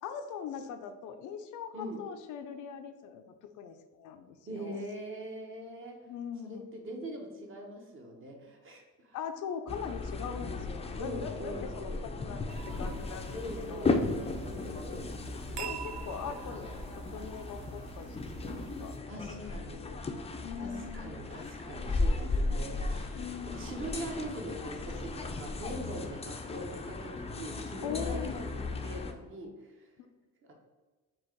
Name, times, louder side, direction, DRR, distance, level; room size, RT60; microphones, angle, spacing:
voice 1, 0.0-4.8 6.1-6.6 9.1-13.4 13.7-13.9 15.6-20.0 20.4-21.2 23.2-23.8 27.8-28.4, left 7 dB, 80° left, 7 dB, 0.5 m, -41 dB
voice 2, 4.5-6.0 6.4-9.2 11.0-12.0 13.3-15.2 16.2-16.3 19.1-19.8 20.6-29.9 30.4-30.5, right 1 dB, 40° right, 1 dB, 1.1 m, -42 dB
sound 1, 9.7-29.1, left 3 dB, 20° left, 0.4 m, -36 dB
sound 2, 12.5-19.0, right 8 dB, 65° right, 0.5 m, -45 dB
4.6 x 2.4 x 4.4 m, 1.2 s
cardioid pair, 90°, 30 cm